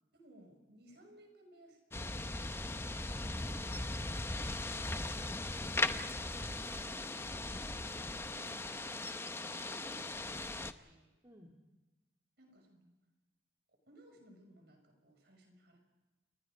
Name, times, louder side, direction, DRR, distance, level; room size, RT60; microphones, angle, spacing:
voice 1, 0.1-2.4 6.7-7.9 8.3-8.8 9.4-11.1 12.4-12.9 13.7-15.8, right 1 dB, 55° right, 4 dB, 6.1 m, -61 dB
sound 1, 1.9-10.7, left 2 dB, 15° left, 0.7 m, -38 dB
voice 2, 8.0-8.4 11.2-11.5, equal, 20° right, 0 dB, 2.3 m, -62 dB
29.5 x 24.0 x 5.1 m, 1.1 s
head